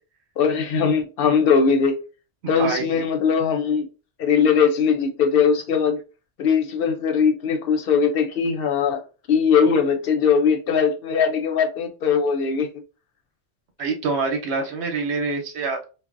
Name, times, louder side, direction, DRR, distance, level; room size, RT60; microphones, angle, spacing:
voice 1, 0.4-2.0 2.5-3.9 4.2-6.0 6.4-9.0 9.3-12.7, left 6 dB, 65° left, 0.7 m, -20 dB
voice 2, 2.4-3.0 13.8-15.8, right 4 dB, 85° right, 1.0 m, -26 dB
2.6 x 2.1 x 2.4 m
omnidirectional pair, 1.1 m